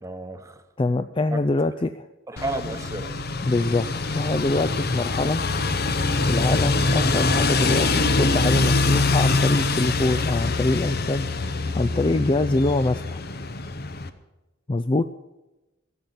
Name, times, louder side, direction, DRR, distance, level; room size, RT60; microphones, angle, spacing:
voice 1, 0.0-0.6 1.3-1.4 2.3-3.1, right 2 dB, 15° right, 8 dB, 1.0 m, -32 dB
voice 2, 0.8-2.1 3.4-3.9 4.1-5.4 6.3-13.2 14.7-15.1, left 2 dB, 25° left, 9 dB, 0.4 m, -24 dB
sound 1, 2.4-14.1, left 3 dB, 50° left, 0.9 m, -24 dB
15.0 x 7.8 x 9.8 m, 1.0 s
head